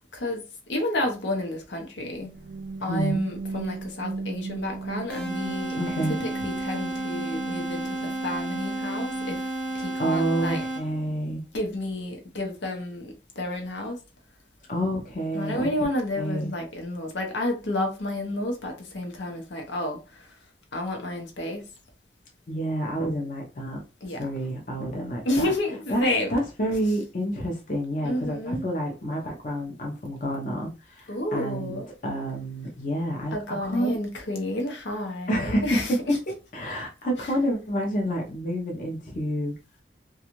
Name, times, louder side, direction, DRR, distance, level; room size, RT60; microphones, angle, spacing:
voice 1, 0.1-0.4 0.7-2.3 2.8-5.8 6.4-8.0 8.2-9.4 9.8-10.6 11.5-14.0 15.3-20.0 20.7-21.7 24.0-24.2 25.3-26.3 28.1-28.6 31.1-31.9 33.3-35.9, left 1 dB, 80° left, 0.7 m, -30 dB
sound 1, 2.0-9.8, right 3 dB, 60° right, 0.4 m, -36 dB
voice 2, 2.9-3.2 5.7-6.3 9.8-11.4 14.7-15.7 16.2-16.5 22.5-23.8 24.2-25.5 25.9-34.0 35.3-39.5, equal, 45° left, 0.6 m, -29 dB
sound 2, 5.1-11.1, right 2 dB, 5° left, 0.7 m, -32 dB
2.5 x 2.3 x 2.9 m
head